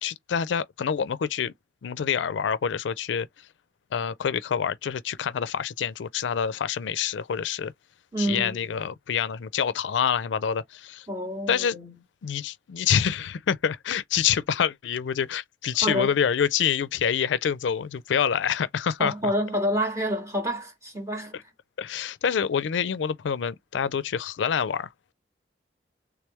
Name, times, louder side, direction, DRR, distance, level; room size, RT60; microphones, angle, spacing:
voice 1, 0.0-1.5 1.8-3.3 3.9-7.7 8.2-11.1 11.5-11.8 12.2-19.1 21.3-21.4 21.8-25.1, left 7 dB, 90° left, 0.4 m, -26 dB
voice 2, 8.1-8.7 11.1-11.9 15.8-16.1 19.0-21.4, equal, 15° right, 1.8 m, -28 dB
3.4 x 3.4 x 3.0 m
head